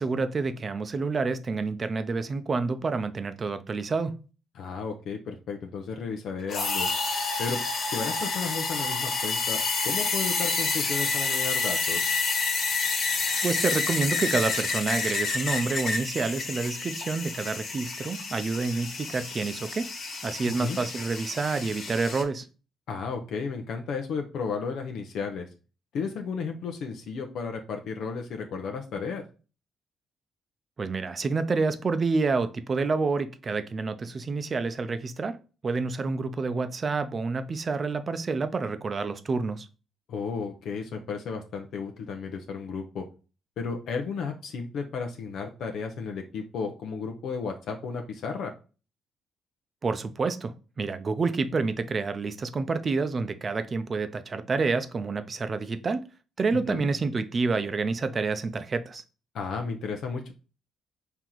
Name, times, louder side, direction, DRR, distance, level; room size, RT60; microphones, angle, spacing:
voice 1, 0.0-4.2 13.4-19.9 20.2-22.5 30.8-35.4 35.6-39.7 49.8-56.1 56.4-59.0, right 4 dB, 40° right, 0.6 m, -28 dB
voice 2, 4.6-6.9 7.4-12.0 20.5-20.8 22.9-25.5 25.9-29.2 40.1-43.0 43.6-48.5 56.7-56.9 59.3-60.3, left 5 dB, 75° left, 0.7 m, -33 dB
sound 1, 6.5-22.2, left 4 dB, 60° left, 1.4 m, -29 dB
4.5 x 2.9 x 3.8 m
cardioid pair, 90°, 0 cm